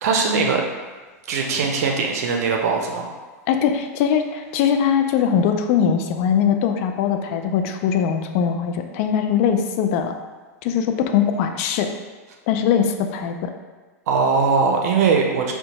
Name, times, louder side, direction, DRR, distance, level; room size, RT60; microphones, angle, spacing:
voice 1, 0.0-0.6 1.3-3.1 14.1-15.5, right 5 dB, 70° right, 1 dB, 0.5 m, -20 dB
voice 2, 3.5-10.1 10.6-11.9 12.5-13.5, left 8 dB, 55° left, 5 dB, 0.4 m, -21 dB
2.7 x 2.2 x 4.0 m, 1.3 s
hypercardioid pair, 110°, 9 cm